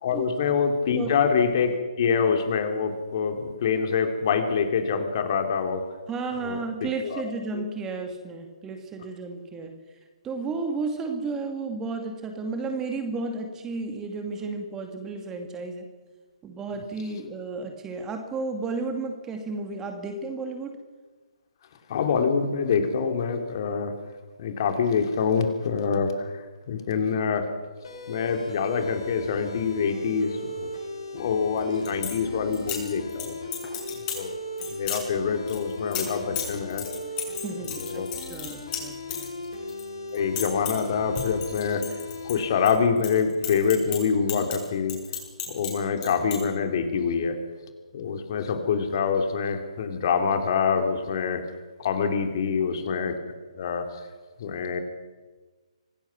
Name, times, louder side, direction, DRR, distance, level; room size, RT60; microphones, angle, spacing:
voice 1, 0.0-5.8 6.4-6.6 7.0-7.2 7.5-7.6 21.9-23.9 24.4-27.5 28.1-30.7 31.1-33.3 34.1-34.3 34.7-36.9 37.8-38.1 40.1-42.0 42.2-45.0 45.5-47.4 47.9-51.4 51.8-53.1 53.6-53.9 54.4-54.8, left 6 dB, 40° left, 6 dB, 2.9 m, -25 dB
voice 2, 6.1-9.8 10.2-15.9 16.4-20.8 37.4-39.2, right 3 dB, 15° right, 4 dB, 2.4 m, -33 dB
sound 1, 27.8-42.8, left 2 dB, 55° left, 7.7 m, -37 dB
sound 2, 31.6-32.2 32.5-33.2 33.5-34.2 34.6-35.0 35.5-39.8 40.1-40.9 41.2-42.7 43.0-45.7 46.0-46.4, left 9 dB, 25° left, 6.2 m, -33 dB
25.5 x 18.5 x 6.0 m, 1.3 s
figure-of-eight pair, 135°, 3 cm